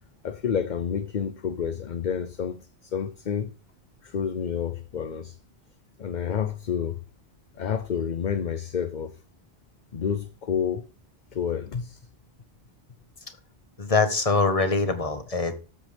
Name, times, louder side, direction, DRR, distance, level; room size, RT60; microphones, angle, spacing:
voice 1, 0.2-3.5 4.0-5.4 6.0-7.0 7.5-9.2 9.9-10.9 11.3-12.1, left 7 dB, 50° left, 0.8 m, -29 dB
voice 2, 13.8-15.6, left 3 dB, 35° left, 1.5 m, -23 dB
13.5 x 7.8 x 3.5 m
omnidirectional pair, 1.0 m